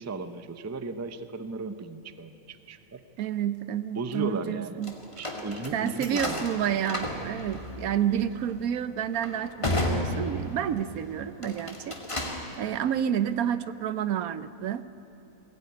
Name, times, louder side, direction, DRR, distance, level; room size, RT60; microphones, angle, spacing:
voice 1, 0.0-3.0 3.9-4.8 5.2-6.5 8.1-8.3, right 3 dB, 20° right, 10 dB, 0.4 m, -36 dB
voice 2, 3.2-4.9 5.7-12.0 12.6-14.8, right 9 dB, 75° right, 14 dB, 1.2 m, -29 dB
sound 1, 4.8-10.9 11.3-12.5, left 1 dB, 20° left, 2.0 m, -33 dB
21.0 x 16.5 x 9.5 m, 2.9 s
omnidirectional pair, 1.5 m